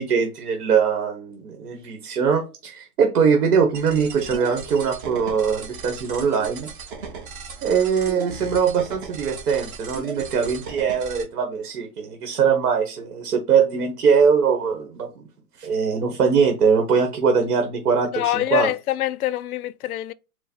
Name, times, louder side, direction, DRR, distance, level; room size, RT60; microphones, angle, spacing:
voice 1, 0.0-6.7 7.6-15.3 15.6-18.7, right 6 dB, 75° right, 1.2 m, -21 dB
sound 1, 3.7-11.2, right 5 dB, 35° right, 1.0 m, -37 dB
voice 2, 18.1-20.1, left 12 dB, 70° left, 0.5 m, -24 dB
4.8 x 2.1 x 4.2 m
hypercardioid pair, 165°, 45 cm